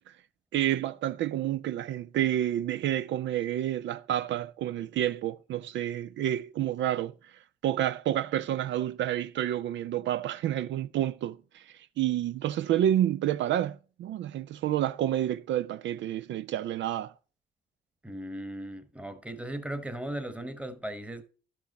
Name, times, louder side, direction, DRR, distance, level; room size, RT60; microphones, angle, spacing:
voice 1, 0.5-7.1 7.6-17.1, right 12 dB, 70° right, 0.4 m, -29 dB
voice 2, 18.0-21.2, right 1 dB, 5° right, 1.2 m, -37 dB
11.5 x 6.1 x 4.1 m
cardioid pair, 90°, 20 cm